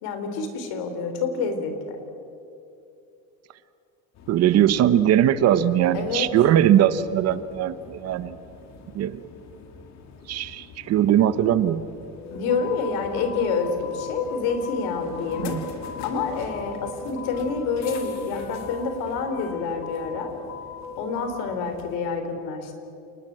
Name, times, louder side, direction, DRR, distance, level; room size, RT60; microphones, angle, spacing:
voice 1, 0.0-2.0 5.9-6.3 12.3-15.6 16.0-20.3 21.0-22.7, left 5 dB, 85° left, 7 dB, 4.0 m, -28 dB
sound 1, 4.2-22.0, left 4 dB, 45° left, 2.5 m, -40 dB
voice 2, 4.3-8.4 8.9-9.2 10.3-11.8 15.4-15.6, right 11 dB, 45° right, 14 dB, 0.9 m, -20 dB
Percussion, 12.3-13.0 13.3-15.1 15.3-16.0 16.3-16.8 17.3-18.9 19.3-20.0, left 2 dB, 65° left, 3.9 m, -47 dB
28.5 x 19.5 x 7.6 m, 2.7 s
cardioid pair, 175°, 36 cm